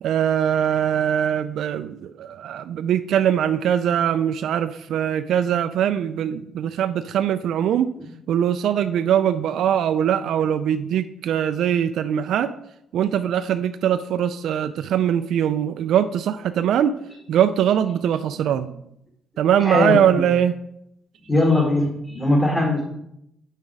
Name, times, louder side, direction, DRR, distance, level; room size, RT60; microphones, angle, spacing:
voice 1, 0.0-7.9 8.3-12.5 12.9-16.9 17.3-18.7 19.4-20.5, right 9 dB, 75° right, 9 dB, 0.3 m, -21 dB
voice 2, 19.6-20.3 21.3-22.8, left 2 dB, 15° left, -3 dB, 1.9 m, -20 dB
6.4 x 5.7 x 4.6 m, 0.78 s
cardioid pair, 90°, 0 cm